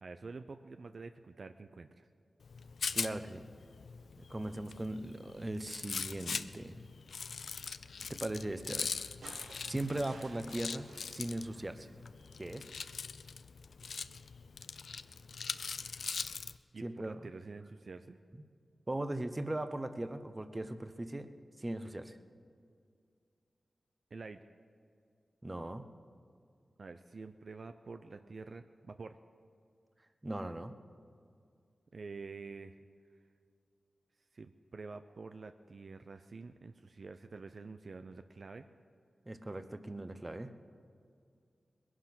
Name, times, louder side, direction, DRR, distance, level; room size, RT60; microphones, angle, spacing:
voice 1, 0.0-2.1 16.7-18.2 24.1-24.4 26.8-29.2 31.9-32.8 34.3-38.6, right 4 dB, 60° right, 8 dB, 0.5 m, -48 dB
Rattle, 2.4-16.6, left 5 dB, 80° left, 0.4 m, -42 dB
voice 2, 2.9-3.4 4.2-6.8 8.1-9.1 9.6-11.9 12.4-12.7 16.8-17.2 18.9-21.3 21.6-22.2 25.4-25.8 30.2-30.7 39.3-40.5, right 1 dB, 25° right, 10 dB, 0.9 m, -39 dB
sound 1, 9.2-12.5 13.9-14.0, right 4 dB, 80° right, 0.9 m, -56 dB
20.0 x 11.0 x 6.1 m, 2.3 s
cardioid pair, 60°, 0 cm